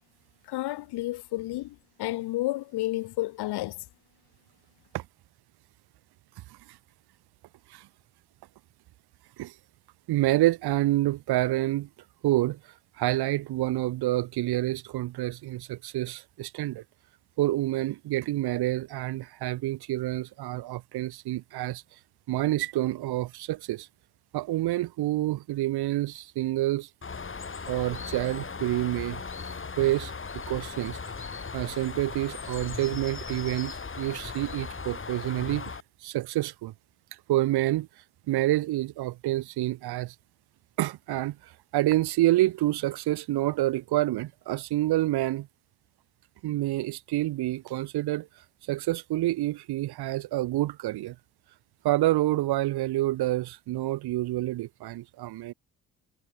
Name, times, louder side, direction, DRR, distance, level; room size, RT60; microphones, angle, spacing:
voice 1, 0.5-3.8, left 17 dB, 80° left, 1.8 m, -31 dB
voice 2, 10.1-11.9 12.2-12.6 13.0-16.8 17.4-21.8 22.3-23.9 24.3-26.9 27.7-29.2 29.8-31.0 31.5-36.7 37.3-37.9 38.3-40.1 40.8-45.5 46.4-48.3 48.7-51.2 51.8-55.5, right 16 dB, 80° right, 2.0 m, -28 dB
Bird, 27.0-35.8, left 5 dB, 30° left, 3.8 m, -38 dB
supercardioid pair, 70°, 38 cm